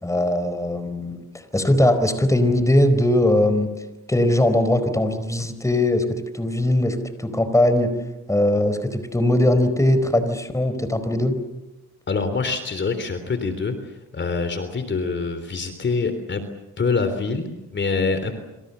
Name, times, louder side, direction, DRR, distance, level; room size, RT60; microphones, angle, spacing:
voice 1, 0.0-3.7 4.1-7.9 8.3-11.4, left 1 dB, 10° left, 10 dB, 4.5 m, -20 dB
voice 2, 12.1-16.4 16.8-18.3, left 4 dB, 40° left, 9 dB, 3.5 m, -25 dB
27.5 x 27.0 x 7.0 m, 1.0 s
cardioid pair, 90°, 30 cm